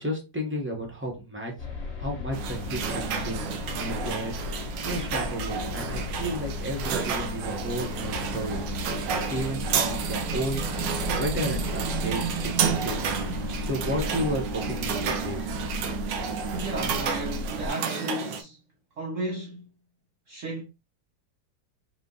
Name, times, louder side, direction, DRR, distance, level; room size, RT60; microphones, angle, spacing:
voice 1, 0.0-1.5 2.0-4.4 4.8-8.6 9.3-10.6 11.2-13.2 13.5-15.8, equal, 10° right, 1.0 m, -33 dB
sound 1, 1.6-17.7, left 4 dB, 40° left, 1.6 m, -35 dB
sound 2, 2.3-18.4, right 7 dB, 80° right, 1.3 m, -31 dB
voice 2, 16.5-18.6 19.0-19.7 20.3-20.6, right 2 dB, 55° right, 1.0 m, -33 dB
4.5 x 2.4 x 4.0 m
omnidirectional pair, 1.9 m